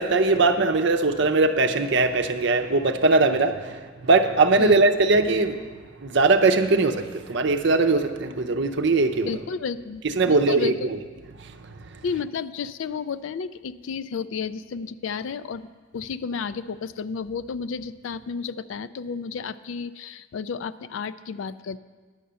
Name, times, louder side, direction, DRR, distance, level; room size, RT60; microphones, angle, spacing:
voice 1, 0.0-5.6 6.0-9.4 10.0-10.7 11.4-11.7, right 3 dB, 60° right, 6 dB, 0.7 m, -20 dB
voice 2, 9.3-10.9 12.0-21.8, left 5 dB, 75° left, 14 dB, 0.4 m, -32 dB
10.5 x 6.4 x 6.8 m, 1.4 s
head